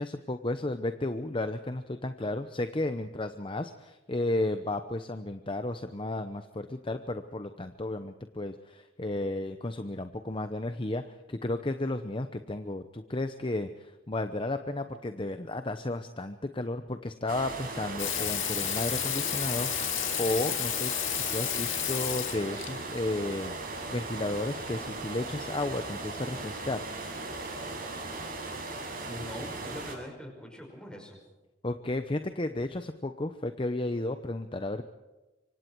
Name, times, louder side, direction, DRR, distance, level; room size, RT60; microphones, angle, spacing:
voice 1, 0.0-26.8 31.6-34.8, left 2 dB, 25° left, 8 dB, 0.8 m, -33 dB
sound 1, 17.3-30.0, right 2 dB, 50° right, 6.1 m, -38 dB
Water tap faucet / Sink (filling or washing), 18.0-22.7 24.2-24.3, left 13 dB, 90° left, 2.1 m, -32 dB
voice 2, 29.1-31.2, equal, 5° left, 2 dB, 5.4 m, -43 dB
26.0 x 25.0 x 4.6 m, 1.1 s
head